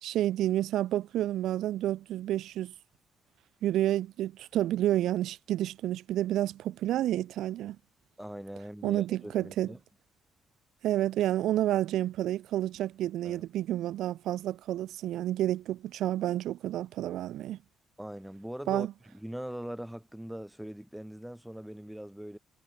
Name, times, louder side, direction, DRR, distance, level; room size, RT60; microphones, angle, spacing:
voice 1, 0.0-2.7 3.6-7.8 8.8-9.7 10.8-17.6 18.7-18.9, right 13 dB, 85° right, 0.5 m, -30 dB
voice 2, 8.2-9.8 13.2-13.4 18.0-18.9 19.1-22.4, equal, 5° right, 2.7 m, -41 dB
cardioid pair, 90°, 0 cm